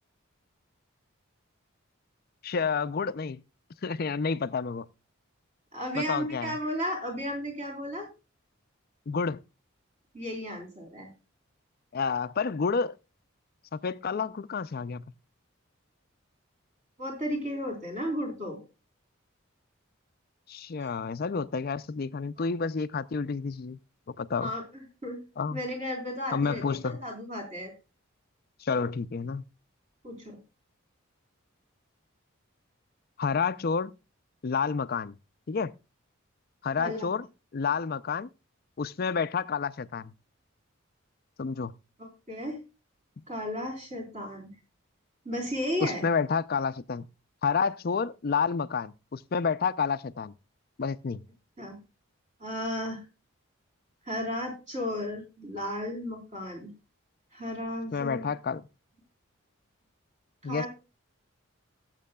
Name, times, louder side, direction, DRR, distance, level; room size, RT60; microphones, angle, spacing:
voice 1, 2.4-3.4 3.8-4.8 5.9-6.6 9.1-9.4 11.9-13.0 13.7-15.1 20.5-23.8 24.2-24.5 25.4-25.6 26.3-27.0 28.6-29.4 33.2-33.9 34.4-35.1 35.5-35.7 36.6-37.3 37.5-38.3 38.8-40.1 41.4-41.7 45.8-47.0 47.4-50.3 50.8-51.2 57.9-58.6 60.4-60.7, left 5 dB, 45° left, 0.4 m, -29 dB
voice 2, 5.7-8.1 10.1-11.1 17.0-18.6 22.4-22.5 24.4-25.2 25.5-27.7 30.0-30.4 36.8-37.0 42.0-42.6 43.3-44.5 45.2-46.0 51.6-51.8 52.4-53.0 54.0-56.7 57.3-58.3 60.4-60.7, equal, 35° right, 3.9 m, -34 dB
18.0 x 7.5 x 2.3 m
head